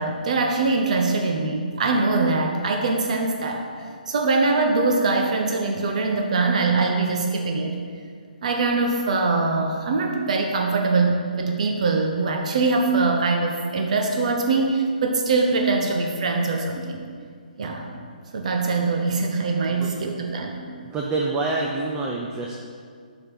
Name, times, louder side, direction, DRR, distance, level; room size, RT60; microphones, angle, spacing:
voice 1, 0.0-3.6 4.1-7.7 8.4-17.0 17.6-17.9 18.3-20.7, right 3 dB, 50° right, 2 dB, 0.7 m, -23 dB
voice 2, 20.8-22.5, right 3 dB, 10° right, -1 dB, 0.4 m, -27 dB
7.0 x 3.7 x 6.0 m, 2.1 s
hypercardioid pair, 160°, 5 cm